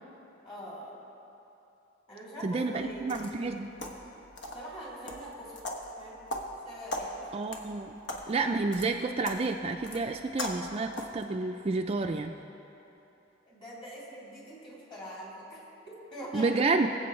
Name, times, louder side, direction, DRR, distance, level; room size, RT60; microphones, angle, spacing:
voice 1, 0.4-1.0 2.1-3.6 4.5-5.5 6.0-6.2 6.6-7.3 13.5-15.7 16.1-16.7, equal, 30° left, -6 dB, 2.9 m, -43 dB
voice 2, 2.4-3.7 7.3-8.0 8.3-12.3 16.3-16.9, right 3 dB, 30° right, 4 dB, 0.4 m, -30 dB
sound 1, 2.8-11.3, left 1 dB, 70° left, 1.2 m, -41 dB
21.5 x 7.7 x 3.2 m, 3.0 s
head